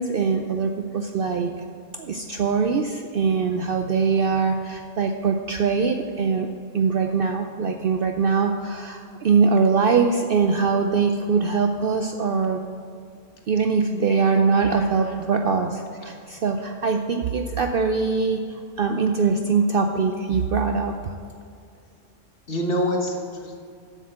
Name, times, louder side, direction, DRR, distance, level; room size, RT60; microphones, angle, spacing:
voice 1, 0.0-1.5 2.0-6.5 6.7-12.6 13.5-21.1, right 5 dB, 60° right, 5 dB, 0.6 m, -22 dB
voice 2, 14.5-15.1 22.5-23.6, equal, 50° left, 1 dB, 1.4 m, -27 dB
7.6 x 6.5 x 7.5 m, 2.3 s
omnidirectional pair, 1.3 m